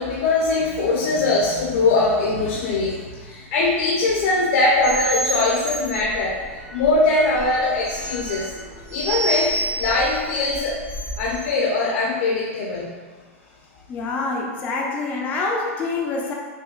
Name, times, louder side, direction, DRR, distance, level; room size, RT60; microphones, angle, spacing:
voice 1, 0.0-6.4 6.7-8.5 8.9-10.8 11.2-12.9, left 2 dB, 55° left, -4 dB, 0.7 m, -21 dB
sound 1, 4.8-11.5, right 1 dB, 25° right, 0.7 m, -29 dB
voice 2, 13.9-16.3, left 3 dB, 20° left, -2 dB, 0.4 m, -26 dB
6.0 x 2.2 x 2.4 m, 1.5 s
supercardioid pair, 155°, 8 cm